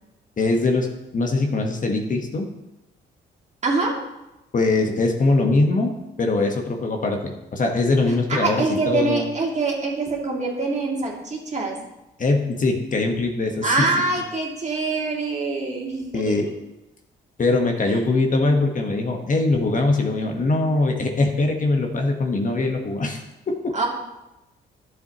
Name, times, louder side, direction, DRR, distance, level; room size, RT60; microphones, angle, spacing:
voice 1, 0.4-2.4 4.5-9.2 12.2-13.9 16.1-16.5 17.4-23.8, left 2 dB, 40° left, 3 dB, 1.3 m, -22 dB
voice 2, 3.6-3.9 8.3-11.8 13.6-16.5 17.8-18.0 23.7-23.9, right 3 dB, 35° right, -1 dB, 2.3 m, -24 dB
11.5 x 7.7 x 3.0 m, 0.97 s
cardioid pair, 90°, 20 cm